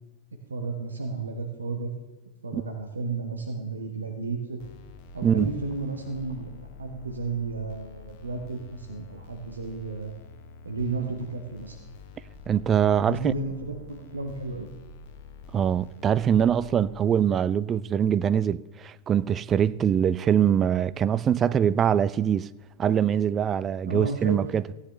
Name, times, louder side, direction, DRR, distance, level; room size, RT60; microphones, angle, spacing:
voice 1, 0.5-1.9 2.4-4.6 5.1-10.1 10.6-11.8 13.0-14.7 23.9-24.4, right 3 dB, 75° right, 1.0 m, -33 dB
sound 1, 4.6-17.0, left 4 dB, 50° left, 1.0 m, -47 dB
voice 2, 12.5-13.3 15.5-22.5 22.8-24.6, right 9 dB, 25° right, 0.3 m, -23 dB
16.0 x 9.6 x 3.3 m
figure-of-eight pair, 90°, 0 cm